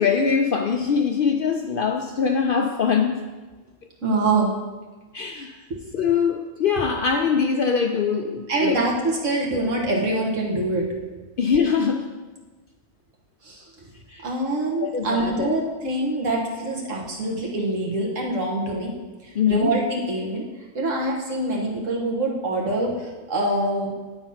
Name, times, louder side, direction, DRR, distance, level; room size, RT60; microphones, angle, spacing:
voice 1, 0.0-3.2 5.1-5.6 5.9-8.8 11.4-12.1 14.1-14.3 14.8-15.6 19.3-19.7, left 6 dB, 60° left, 3 dB, 0.6 m, -22 dB
voice 2, 4.0-4.5 8.5-10.9 13.4-13.6 14.2-18.9 19.2-20.5 20.7-23.9, right 2 dB, 75° right, -1 dB, 1.7 m, -25 dB
8.9 x 3.9 x 5.6 m, 1.3 s
omnidirectional pair, 1.3 m